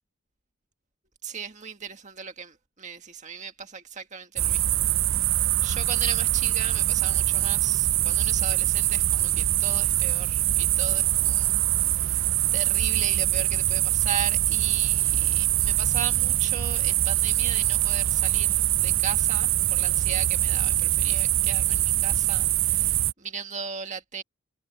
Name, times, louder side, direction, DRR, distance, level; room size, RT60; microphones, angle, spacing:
voice 1, 1.2-4.8 5.3-11.5 11.9-24.2, right 6 dB, 35° right, 1.9 m, -37 dB
sound 1, 4.4-23.1, right 14 dB, 65° right, 0.5 m, -23 dB
head